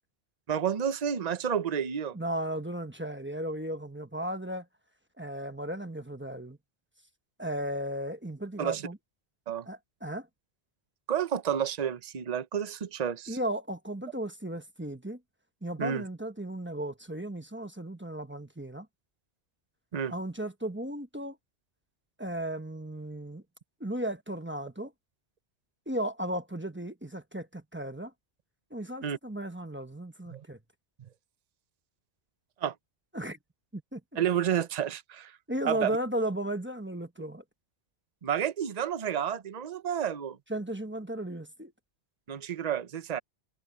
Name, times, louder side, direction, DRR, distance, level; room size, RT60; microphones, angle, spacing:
voice 1, 0.5-2.2 8.6-8.9 9.5-9.7 11.1-13.4 15.8-16.0 19.9-20.1 29.0-29.2 30.3-30.4 32.6-32.7 34.2-35.3 35.6-36.0 38.2-40.4 42.3-43.2, right 8 dB, 40° right, 0.8 m, -30 dB
voice 2, 2.1-4.7 5.2-6.6 7.4-9.0 9.7-10.3 13.3-15.2 15.6-18.9 20.1-21.4 22.2-23.4 23.8-24.9 25.9-28.1 28.7-30.6 33.1-33.4 33.7-34.0 35.5-37.4 40.5-41.7, right 1 dB, 10° right, 1.1 m, -35 dB
omnidirectional pair, 1.1 m